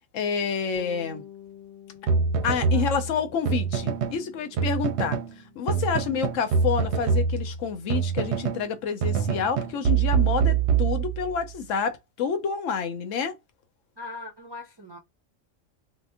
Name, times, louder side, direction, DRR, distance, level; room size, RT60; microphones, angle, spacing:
voice 1, 0.1-1.2 2.4-5.2 5.6-13.4, left 6 dB, 75° left, 1.0 m, -28 dB
Bass guitar, 0.7-10.4, left 10 dB, 55° left, 1.1 m, -51 dB
sound 1, 2.1-4.2 4.6-5.3 5.7-8.7 9.0-11.4, right 6 dB, 65° right, 0.8 m, -25 dB
voice 2, 5.8-6.3 14.0-15.0, left 3 dB, 40° right, 0.3 m, -41 dB
2.8 x 2.1 x 3.4 m
omnidirectional pair, 1.3 m